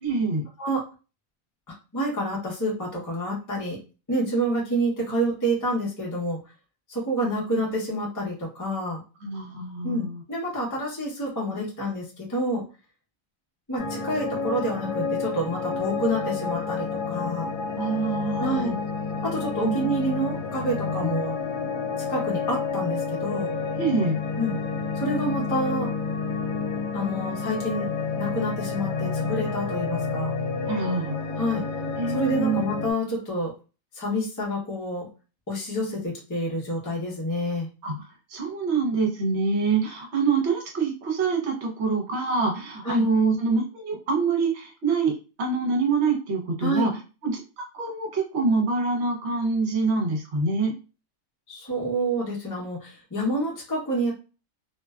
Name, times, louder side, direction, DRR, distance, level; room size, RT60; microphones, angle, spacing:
voice 1, 0.0-0.4 9.2-10.2 17.8-18.7 19.6-19.7 23.8-24.2 30.7-31.2 32.0-32.6 37.8-46.9 47.2-50.7, right 4 dB, 55° right, 1 dB, 1.0 m, -25 dB
voice 2, 1.9-3.8 4.1-6.4 6.9-9.0 9.8-12.6 13.7-17.5 18.4-18.7 19.2-21.3 22.1-23.5 24.4-24.6 24.9-25.9 26.9-27.9 28.2-30.3 31.4-31.6 32.1-33.5 33.9-35.1 35.5-37.7 42.8-43.0 46.6-46.9 51.5-54.1, right 1 dB, 20° left, -4 dB, 0.6 m, -28 dB
sound 1, 13.8-32.9, left 5 dB, 80° left, 1.0 m, -30 dB
2.5 x 2.2 x 2.3 m, 0.32 s
omnidirectional pair, 1.4 m